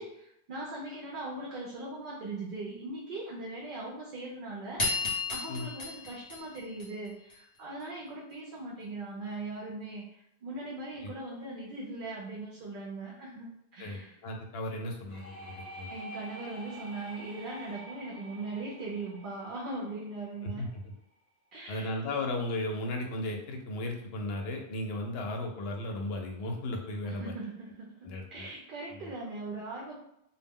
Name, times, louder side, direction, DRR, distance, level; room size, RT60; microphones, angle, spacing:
voice 1, 0.0-14.2 15.9-20.7 21.5-22.0 27.0-30.0, right 2 dB, 60° right, -4 dB, 0.6 m, -40 dB
sound 1, 4.8-7.3, left 3 dB, 45° left, 0.8 m, -33 dB
voice 2, 13.8-15.9 20.4-20.8 21.7-27.3 28.0-28.5 28.9-29.1, left 1 dB, 75° left, 2 dB, 0.8 m, -35 dB
sound 2, 15.1-20.7, equal, 20° left, 0.4 m, -47 dB
2.2 x 2.0 x 3.5 m, 0.78 s
omnidirectional pair, 1.1 m